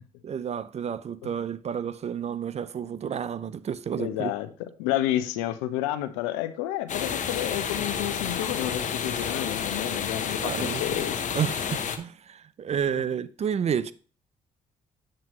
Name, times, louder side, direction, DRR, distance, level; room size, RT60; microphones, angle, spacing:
voice 1, 0.2-4.3 10.4-11.1 11.3-13.9, right 8 dB, 45° right, 0.6 m, -30 dB
voice 2, 3.9-4.5 4.8-11.2 12.9-13.0, left 13 dB, 85° left, 0.7 m, -30 dB
sound 1, 6.9-12.0, left 7 dB, 50° left, 1.0 m, -30 dB
7.6 x 7.5 x 3.1 m
hypercardioid pair, 55°, 16 cm